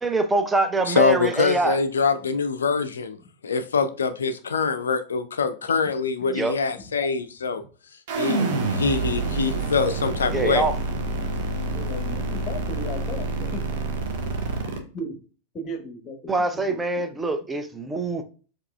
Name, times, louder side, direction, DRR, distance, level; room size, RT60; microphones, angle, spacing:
voice 1, 0.0-1.8 6.3-6.6 10.3-10.7 16.3-18.2, right 3 dB, 10° right, 0.5 m, -24 dB
voice 2, 0.9-3.2 3.4-7.6 8.2-8.4 8.8-10.6, left 5 dB, 70° left, 0.3 m, -24 dB
voice 3, 6.7-7.1 7.5-7.6 8.3-8.8 11.6-13.7 14.2-14.3 14.9-15.2 15.5-17.2, left 1 dB, 30° left, 0.9 m, -37 dB
sound 1, 8.1-14.8, right 3 dB, 50° right, 0.9 m, -27 dB
4.7 x 2.9 x 2.3 m
figure-of-eight pair, 90°, 0 cm